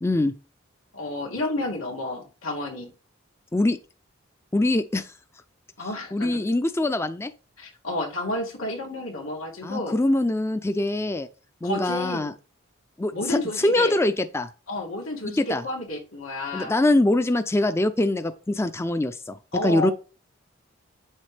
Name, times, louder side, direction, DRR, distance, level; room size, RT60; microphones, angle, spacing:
voice 1, 0.0-0.3 3.5-3.8 4.5-5.1 6.1-7.3 9.6-11.3 11.6-12.3 13.0-14.5 15.4-15.6 16.5-19.4 19.6-19.9, left 2 dB, 10° left, 0.4 m, -23 dB
voice 2, 0.9-2.9 5.8-6.4 7.6-10.0 11.6-12.3 13.1-14.0 14.7-16.8 19.5-19.9, left 2 dB, 90° left, 2.4 m, -31 dB
8.5 x 7.4 x 3.3 m
head